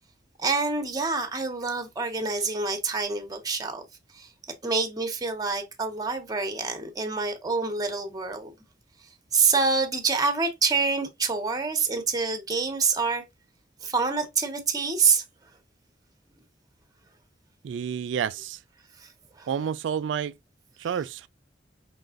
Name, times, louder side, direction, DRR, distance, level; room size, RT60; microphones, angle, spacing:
voice 1, 0.4-3.8 4.1-4.3 4.6-8.5 9.3-13.2 13.8-15.2 19.0-19.1 19.4-19.5, right 4 dB, 20° right, 1.1 m, -26 dB
voice 2, 17.6-18.6 19.5-20.3 20.8-21.3, right 8 dB, 90° right, 0.3 m, -29 dB
5.4 x 3.9 x 2.5 m
head